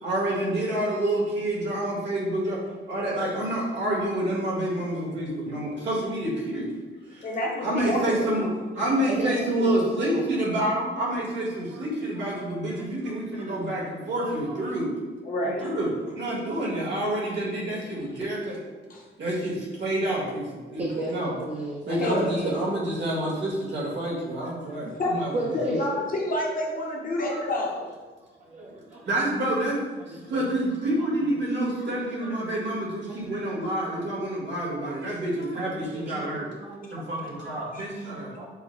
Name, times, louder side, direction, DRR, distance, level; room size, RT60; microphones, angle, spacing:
voice 1, 0.0-2.6 2.9-6.7 7.1-7.3 7.6-8.5 8.7-14.9 15.4-18.6 19.2-21.3 21.9-26.1 27.2-27.3 28.5-29.8 30.1-36.5 36.9-38.4, right 1 dB, 60° right, -5 dB, 1.5 m, -28 dB
voice 2, 7.2-8.3 15.2-15.7 18.9-19.0 22.0-22.5 25.0-25.2 25.5-27.9 37.7-37.8, left 1 dB, 45° left, -2 dB, 0.9 m, -28 dB
voice 3, 8.7-10.3 11.7-11.8 12.2-12.3 12.8-12.9 13.4-13.6 14.2-14.6 15.5-15.7 16.3-16.4 20.8-22.7 24.4-24.5 25.3-25.9 28.4-29.1 30.1-30.5 32.0-32.3 33.1-33.4 35.5-35.6 36.1-37.5 37.9-38.5, right 2 dB, 35° right, -3 dB, 0.6 m, -35 dB
5.6 x 2.1 x 4.4 m, 1.3 s
wide cardioid pair, 170°, 21 cm